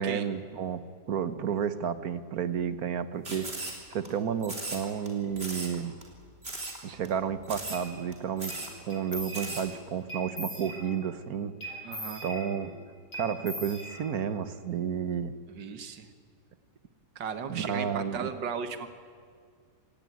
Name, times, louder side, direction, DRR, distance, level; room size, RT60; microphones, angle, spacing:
voice 1, 0.0-5.9 6.8-11.7 12.2-12.7 13.1-15.3 17.5-18.3, right 7 dB, 60° right, 13 dB, 1.5 m, -32 dB
sound 1, 3.2-4.1 4.4-5.1 5.4-5.7 6.0-6.1 6.4-6.8 7.0-7.1 7.4-7.8 8.1-8.2 8.4-8.7 9.1-9.6, right 2 dB, 35° right, 4.1 m, -37 dB
sound 2, 7.7-7.8 8.4-8.6 8.9-9.7 10.1-11.1 11.6-12.8 13.1-14.4, equal, 55° left, 5.2 m, -40 dB
voice 2, 11.8-12.2 15.5-16.1 17.2-18.9, right 6 dB, 90° right, 9 dB, 2.0 m, -36 dB
24.5 x 18.5 x 9.5 m, 2.1 s
omnidirectional pair, 1.9 m